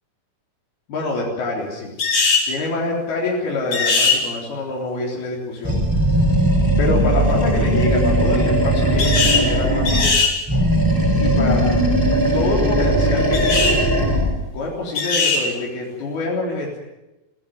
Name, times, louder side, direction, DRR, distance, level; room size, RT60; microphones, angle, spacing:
voice 1, 0.9-1.9 2.5-6.0 6.8-10.1 11.2-11.7 12.3-13.8 14.5-16.8, left 2 dB, 90° left, -3 dB, 5.8 m, -26 dB
sound 1, 2.0-2.5 3.7-4.2 9.0-9.5 9.9-10.3 13.3-13.8 14.9-15.5, left 4 dB, 60° left, 6.7 m, -19 dB
Animal, 5.6-10.2 10.5-14.4, right 1 dB, 5° right, 4.8 m, -18 dB
26.0 x 17.0 x 9.5 m, 0.99 s
omnidirectional pair, 4.3 m